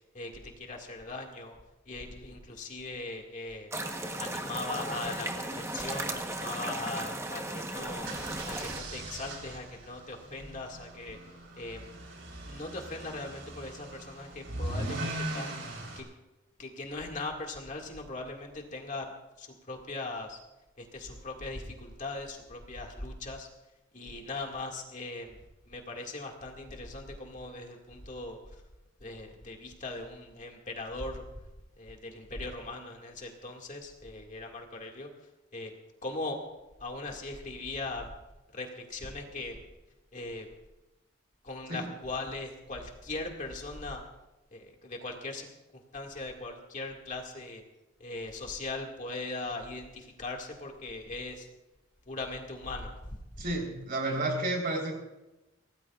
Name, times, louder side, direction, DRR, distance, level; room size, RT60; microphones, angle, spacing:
voice 1, 0.1-1.6 1.9-3.7 4.2-8.1 8.5-11.2 11.6-11.9 12.4-15.6 16.0-16.1 16.6-19.1 19.4-20.4 20.8-23.5 23.9-25.4 25.7-28.4 29.0-31.2 31.8-35.1 35.5-35.7 36.0-36.4 36.8-38.1 38.5-39.6 40.1-40.5 41.4-44.0 44.5-45.5 45.7-47.6 48.0-51.5 52.1-53.5, left 2 dB, 40° left, 1 dB, 2.1 m, -39 dB
sound 1, 3.7-8.8, right 1 dB, 15° right, 1.1 m, -36 dB
sound 2, 7.9-16.0, right 1 dB, 65° right, 4.0 m, -40 dB
voice 2, 53.4-54.9, right 2 dB, 45° right, 1 dB, 3.9 m, -31 dB
24.5 x 17.5 x 2.5 m, 1.0 s
head